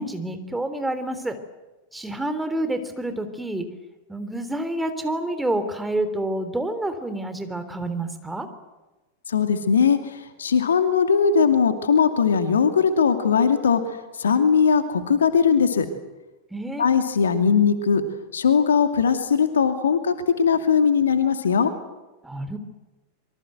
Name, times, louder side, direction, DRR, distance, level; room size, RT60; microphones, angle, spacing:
voice 1, 0.0-1.4 1.9-3.6 4.1-8.5 16.5-16.9 22.2-22.6, right 1 dB, 5° right, 8 dB, 3.4 m, -28 dB
voice 2, 9.3-10.0 10.4-13.8 14.2-15.9 16.8-18.0 18.3-21.7, left 6 dB, 70° left, 8 dB, 2.4 m, -19 dB
26.5 x 24.0 x 8.0 m, 1.1 s
figure-of-eight pair, 90°, 0 cm